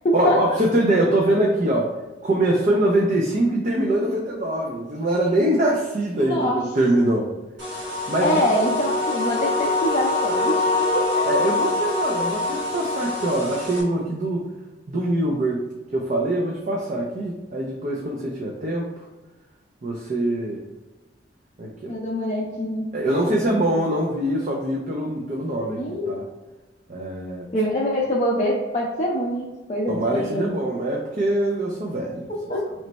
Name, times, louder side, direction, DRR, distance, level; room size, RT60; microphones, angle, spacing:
voice 1, 0.1-1.9 2.2-7.3 8.1-8.4 11.3-14.5 14.9-15.7 15.9-18.9 19.8-20.6 21.6-21.9 22.9-26.2 26.9-27.4 29.9-32.3, right 1 dB, 40° right, -2 dB, 0.5 m, -23 dB
voice 2, 6.3-6.6 8.2-10.5 10.9-11.3 21.9-22.9 25.8-26.3 27.5-30.4 32.3-32.6, equal, 35° left, -4 dB, 0.5 m, -24 dB
sound 1, 7.6-13.8, left 2 dB, 85° right, 1.4 m, -24 dB
3.1 x 3.1 x 4.0 m, 1.2 s
head